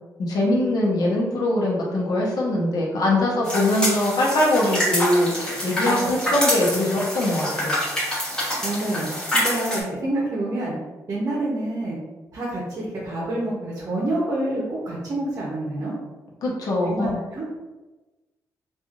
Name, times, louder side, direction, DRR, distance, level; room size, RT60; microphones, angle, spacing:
voice 1, 0.2-7.7 16.4-17.2, left 1 dB, 75° left, -3 dB, 0.8 m, -22 dB
sound 1, 3.4-9.8, left 1 dB, 10° left, 1.0 m, -26 dB
voice 2, 5.8-6.3 8.6-9.1 9.3-10.8 11.1-12.0 12.3-15.9 16.8-17.5, right 1 dB, 45° right, -4 dB, 0.7 m, -27 dB
2.9 x 2.4 x 2.4 m, 1.1 s
cardioid pair, 125°, 6 cm